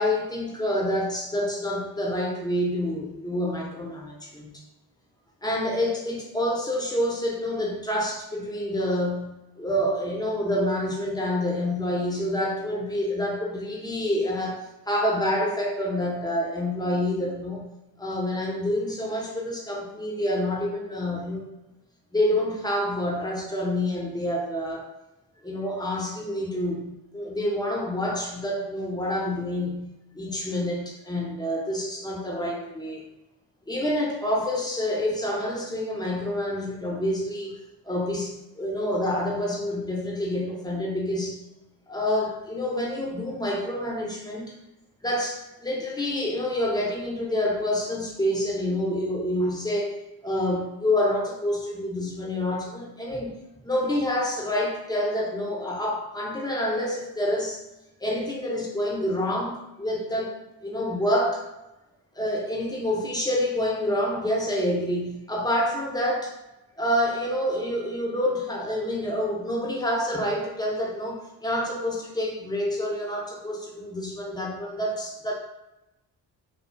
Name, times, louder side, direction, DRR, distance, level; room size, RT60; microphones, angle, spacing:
voice 1, 0.0-4.6 5.4-17.7 18.0-21.5 22.1-24.9 25.4-33.0 33.7-37.6 37.9-41.4 41.9-44.5 45.0-50.0 50.2-53.4 53.6-57.6 58.0-61.4 62.1-66.3 66.8-75.3, left 1 dB, 10° left, -2 dB, 0.7 m, -27 dB
2.5 x 2.3 x 2.2 m, 0.96 s
supercardioid pair, 50°, 46 cm